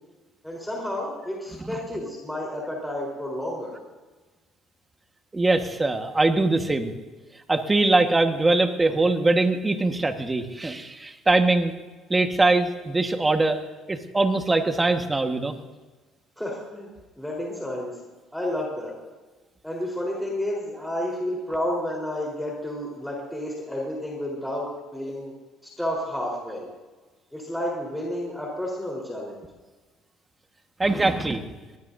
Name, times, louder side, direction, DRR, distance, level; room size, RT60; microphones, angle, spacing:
voice 1, 0.4-3.8 16.4-16.9 17.2-18.0 18.3-18.9 19.6-25.3 25.6-26.7 27.3-29.4, left 1 dB, 5° left, -3 dB, 4.1 m, -31 dB
voice 2, 5.3-6.9 7.5-11.7 12.1-13.6 13.9-15.5 30.8-31.4, right 2 dB, 15° right, 6 dB, 1.5 m, -22 dB
22.5 x 19.0 x 2.7 m, 1.3 s
cardioid pair, 105°, 0 cm